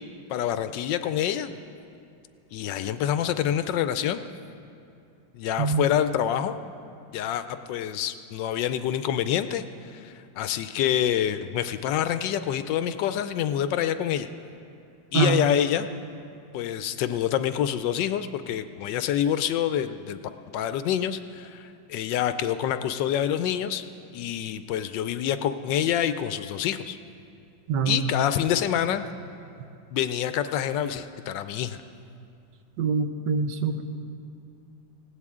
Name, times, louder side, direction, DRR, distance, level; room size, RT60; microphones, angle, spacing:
voice 1, 0.3-1.5 2.5-4.2 5.3-6.6 7.1-14.3 15.1-15.9 16.5-20.2 20.5-23.8 24.1-27.0 27.9-29.1 29.9-31.8, left 10 dB, 75° left, 11 dB, 1.2 m, -27 dB
voice 2, 27.7-28.1 32.8-33.8, right 5 dB, 70° right, 7 dB, 1.4 m, -24 dB
19.5 x 16.5 x 3.7 m, 2.6 s
omnidirectional pair, 2.1 m